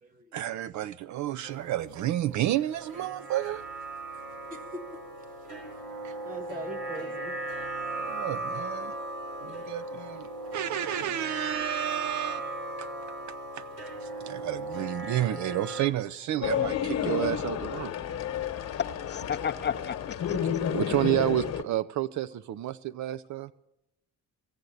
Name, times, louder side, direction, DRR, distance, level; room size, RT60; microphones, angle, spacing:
voice 1, 0.3-3.6 6.0-6.1 8.0-9.0 9.4-10.3 10.5-12.9 13.6-13.7 14.0-17.9 20.3-23.5, right 13 dB, 65° right, 0.5 m, -31 dB
sound 1, 1.4-15.9, right 2 dB, 90° right, 3.3 m, -37 dB
voice 2, 4.5-5.3 6.2-7.4 9.9-10.0, right 1 dB, 25° right, 1.7 m, -42 dB
sound 2, 16.4-21.6, left 9 dB, 55° left, 1.1 m, -31 dB
voice 3, 19.1-20.4, left 7 dB, 35° left, 0.6 m, -33 dB
16.0 x 7.9 x 9.8 m
cardioid pair, 115°, 31 cm